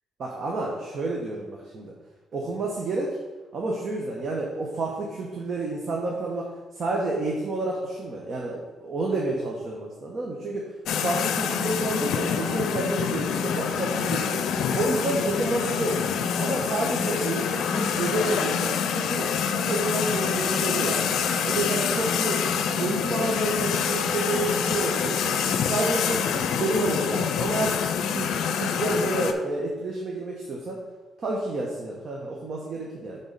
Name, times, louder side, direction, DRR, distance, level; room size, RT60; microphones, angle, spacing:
voice 1, 0.2-1.9 2.3-3.2 3.5-10.7 11.0-16.0 16.4-21.1 21.4-25.4 25.7-27.8 28.1-30.8 31.2-33.2, right 2 dB, 50° right, -2 dB, 1.1 m, -29 dB
sound 1, 10.9-29.3, left 7 dB, 80° left, 0.5 m, -26 dB
6.3 x 3.8 x 5.4 m, 1.3 s
cardioid pair, 90°, 0 cm